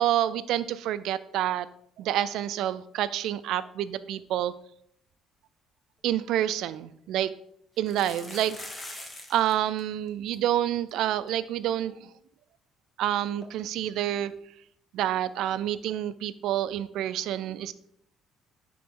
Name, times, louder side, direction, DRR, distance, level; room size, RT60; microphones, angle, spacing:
voice 1, 0.0-1.7 2.0-4.5 6.0-7.3 7.8-8.6 9.3-12.1 13.0-14.3 14.9-17.7, right 11 dB, 75° right, 15 dB, 0.4 m, -28 dB
sound 1, 6.2-6.3 6.6-6.7 7.8-9.5 9.8-9.9 10.1-10.4 10.9-11.0 11.3-11.4 13.4-13.5, left 1 dB, 15° left, 1.3 m, -42 dB
10.0 x 3.8 x 3.7 m, 0.70 s
cardioid pair, 100°, 0 cm